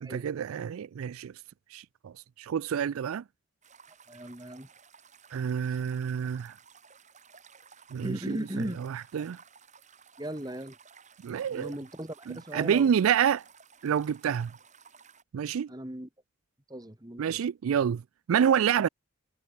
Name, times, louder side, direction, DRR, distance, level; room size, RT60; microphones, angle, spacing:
voice 1, 0.0-1.3 1.7-3.2 5.3-6.5 7.9-8.4 8.8-9.4 11.2-11.7 12.3-13.4 13.8-14.5 15.3-15.7 17.2-18.0 18.3-18.9, right 8 dB, 85° right, 0.4 m, -28 dB
sound 1, 3.6-15.2, right 6 dB, 35° right, 6.8 m, -56 dB
voice 2, 4.1-4.7 8.0-8.8 10.2-10.8 11.5-12.9 15.7-16.1 16.7-17.4, right 1 dB, 20° right, 1.8 m, -37 dB
head